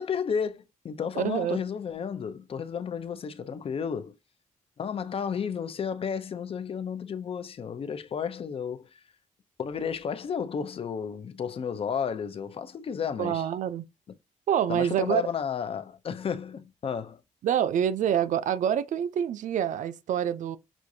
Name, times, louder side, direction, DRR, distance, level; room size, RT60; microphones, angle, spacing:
voice 1, 0.0-4.2 4.8-8.9 9.6-13.5 14.7-17.2, left 7 dB, 45° left, 0.5 m, -32 dB
voice 2, 1.2-1.6 13.2-13.8 14.5-15.2 17.4-20.6, right 9 dB, 80° right, 0.4 m, -26 dB
6.1 x 2.5 x 2.6 m
wide cardioid pair, 125°, 13 cm